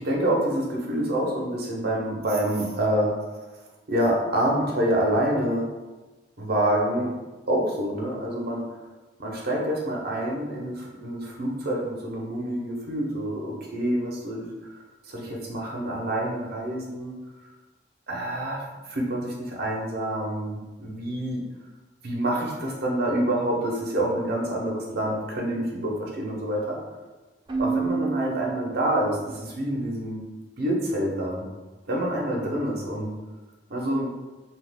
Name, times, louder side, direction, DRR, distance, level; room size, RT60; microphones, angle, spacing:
voice 1, 0.0-3.4 3.9-5.7 6.4-7.1 7.5-8.8 9.2-14.5 15.0-17.1 18.1-21.4 22.0-26.8 27.6-30.2 30.6-31.4 31.9-33.1 33.7-34.1, right 1 dB, 60° right, -2 dB, 0.7 m, -27 dB
Keyboard (musical), 27.5-29.3, right 4 dB, 25° right, 0.4 m, -29 dB
2.8 x 2.4 x 3.4 m, 1.2 s
head